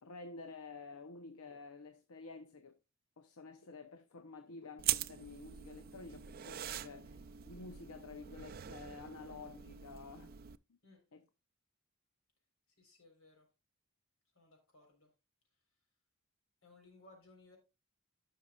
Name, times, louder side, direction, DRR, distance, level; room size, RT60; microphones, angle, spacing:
voice 1, 0.0-2.8 3.2-10.4 10.7-10.8 11.1-11.2, left 4 dB, 90° left, 0.7 m, -51 dB
sound 1, 4.8-10.6, right 12 dB, 45° right, 0.4 m, -42 dB
voice 2, 12.8-13.5 14.3-15.1 16.6-17.6, left 2 dB, 70° left, 3.9 m, -62 dB
14.5 x 5.9 x 2.3 m
head